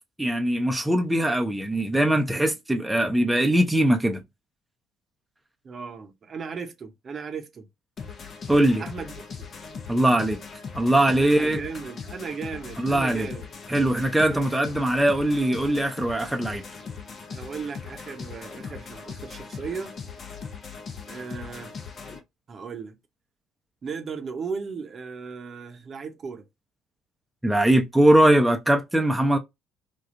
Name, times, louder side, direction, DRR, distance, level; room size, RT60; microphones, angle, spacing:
voice 1, 0.2-4.2 8.5-8.8 9.9-10.4 10.7-11.6 12.8-13.3 13.7-16.6 27.4-29.4, right 1 dB, 10° right, 0.6 m, -21 dB
voice 2, 5.6-7.7 8.8-9.5 11.1-13.5 14.2-14.4 17.3-20.0 21.1-21.7 22.5-23.0 23.8-26.5, right 5 dB, 45° right, 0.8 m, -36 dB
sound 1, 8.0-22.2, left 5 dB, 45° left, 0.7 m, -39 dB
3.4 x 2.3 x 2.5 m
hypercardioid pair, 55°, 0 cm